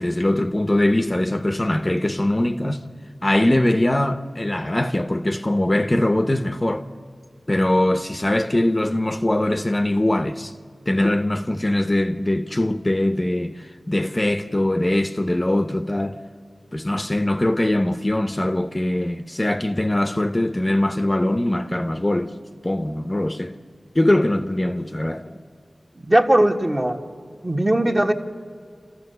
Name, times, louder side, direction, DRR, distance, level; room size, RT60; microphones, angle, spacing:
voice 1, 0.0-2.8 3.2-6.9 7.5-10.5 10.9-16.2 16.7-22.3 22.6-23.5 23.9-25.3, left 1 dB, 25° left, 0.7 m, -22 dB
voice 2, 26.0-27.0 27.4-28.1, right 1 dB, 30° right, 1.4 m, -19 dB
28.5 x 14.0 x 6.7 m
wide cardioid pair, 70°, 0 cm